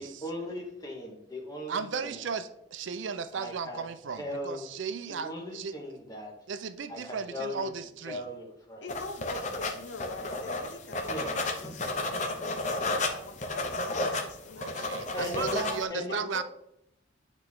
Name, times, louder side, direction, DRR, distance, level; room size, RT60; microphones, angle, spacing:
voice 1, 0.0-2.2 3.3-3.9 4.2-4.7 5.1-6.3 6.9-7.7 8.1-8.9 9.6-9.7 11.0-11.3 11.8-11.9 15.1-16.2, left 1 dB, 20° left, 0 dB, 1.5 m, -38 dB
voice 2, 1.7-5.7 6.5-8.2 14.6-16.4, right 6 dB, 85° right, 12 dB, 0.5 m, -35 dB
voice 3, 8.8-15.4 16.1-16.4, left 3 dB, 70° left, 8 dB, 0.8 m, -44 dB
sound 1, 8.9-15.8, left 2 dB, 40° left, 0.9 m, -32 dB
9.0 x 4.5 x 3.6 m, 0.78 s
head